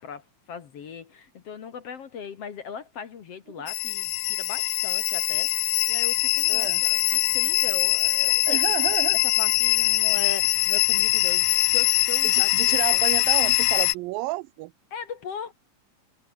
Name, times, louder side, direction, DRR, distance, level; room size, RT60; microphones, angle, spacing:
voice 1, 0.0-8.6 9.2-13.1 14.9-15.5, left 6 dB, 50° left, 2.3 m, -39 dB
sound 1, 3.7-14.0, left 19 dB, 80° left, 2.0 m, -22 dB
voice 2, 6.5-6.8 8.5-9.2 12.2-14.7, right 20 dB, 85° right, 2.3 m, -30 dB
omnidirectional pair, 4.1 m